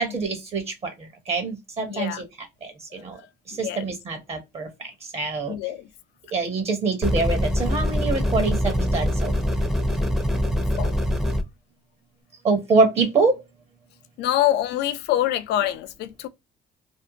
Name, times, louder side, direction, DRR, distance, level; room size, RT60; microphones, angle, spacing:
voice 1, 0.0-2.2 2.6-3.2 3.5-5.6 6.3-9.3 12.4-13.4, right 4 dB, 40° right, 0.8 m, -25 dB
voice 2, 1.9-2.2 3.2-3.9 5.5-5.9 10.8-11.0 14.2-16.3, left 13 dB, 80° left, 0.4 m, -26 dB
sound 1, 7.0-11.4, equal, 5° right, 0.5 m, -23 dB
2.6 x 2.1 x 2.6 m
cardioid pair, 110°, 17 cm